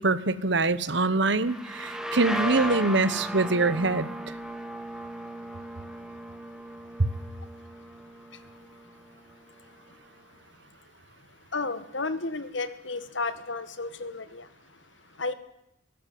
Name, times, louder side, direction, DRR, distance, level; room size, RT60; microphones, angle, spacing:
voice 1, 0.0-4.1, right 3 dB, 65° right, 16 dB, 1.3 m, -24 dB
sound 1, 1.4-8.9, right 1 dB, 5° right, 2.1 m, -36 dB
voice 2, 11.5-14.4 15.2-15.3, left 3 dB, 75° left, 13 dB, 2.0 m, -32 dB
21.0 x 18.5 x 9.4 m, 0.84 s
head